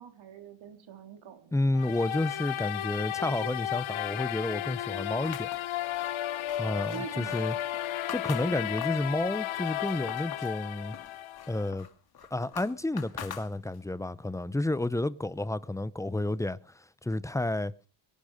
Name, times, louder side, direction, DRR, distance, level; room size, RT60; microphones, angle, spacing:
voice 1, 0.0-1.6 6.9-7.6, right 7 dB, 70° right, 3.9 m, -44 dB
voice 2, 1.5-5.5 6.6-7.6 8.1-11.0 11.5-11.9 12.3-17.7, left 2 dB, 5° left, 0.7 m, -31 dB
sound 1, 1.7-11.7, left 13 dB, 70° left, 1.1 m, -34 dB
sound 2, 5.2-9.1 9.5-10.6 10.9-14.0, left 8 dB, 45° left, 2.7 m, -45 dB
24.0 x 11.5 x 5.1 m
cardioid pair, 125°, 49 cm